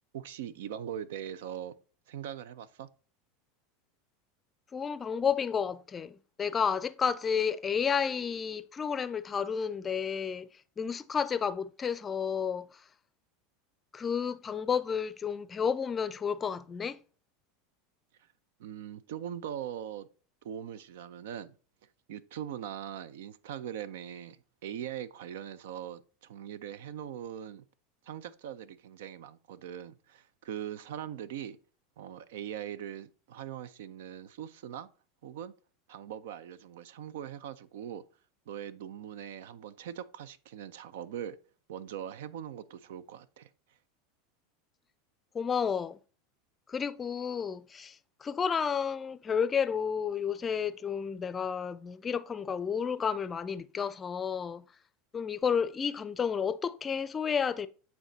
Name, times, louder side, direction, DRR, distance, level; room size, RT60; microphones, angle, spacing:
voice 1, 0.1-1.7 2.1-2.9 18.6-20.1 20.4-21.5 22.1-27.6 28.0-31.6 32.0-34.9 35.2-35.5 35.9-38.0 38.5-41.4 41.7-43.5, right 10 dB, 75° right, 0.5 m, -41 dB
voice 2, 4.7-10.5 10.8-12.8 13.9-17.0 45.3-46.0 46.7-54.7 55.1-57.7, left 7 dB, 25° left, 0.4 m, -31 dB
8.9 x 3.5 x 4.0 m
hypercardioid pair, 110°, 0 cm